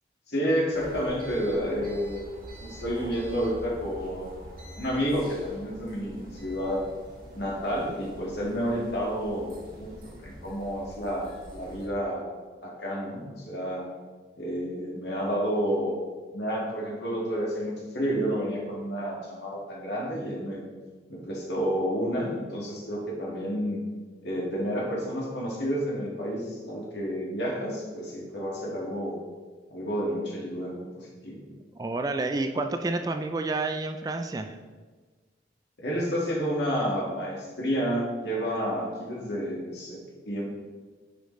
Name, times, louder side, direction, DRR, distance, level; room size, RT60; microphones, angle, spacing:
voice 1, 0.3-2.4 2.6-4.3 4.8-6.9 7.3-12.3 12.6-13.9 14.4-16.0 16.3-20.6 21.1-23.8 24.2-29.2 29.7-30.8 31.2-31.4 35.8-40.0 40.3-40.4, equal, 75° left, -3 dB, 1.8 m, -30 dB
sound 1, 0.7-11.9, right 1 dB, 50° right, 1.4 m, -45 dB
voice 2, 31.8-34.6, right 2 dB, 20° right, 6 dB, 0.3 m, -29 dB
10.0 x 5.1 x 3.1 m, 1.4 s
head